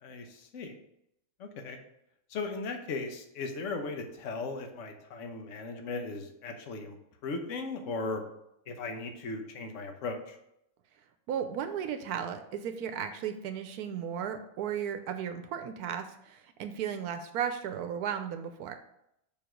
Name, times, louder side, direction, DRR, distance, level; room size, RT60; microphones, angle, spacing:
voice 1, 0.0-0.8 1.4-1.8 2.3-7.0 7.2-8.2 8.7-10.4, left 3 dB, 60° left, 4 dB, 1.2 m, -37 dB
voice 2, 11.3-18.8, right 8 dB, 85° right, 8 dB, 1.1 m, -35 dB
5.5 x 4.8 x 5.0 m, 0.78 s
omnidirectional pair, 1.6 m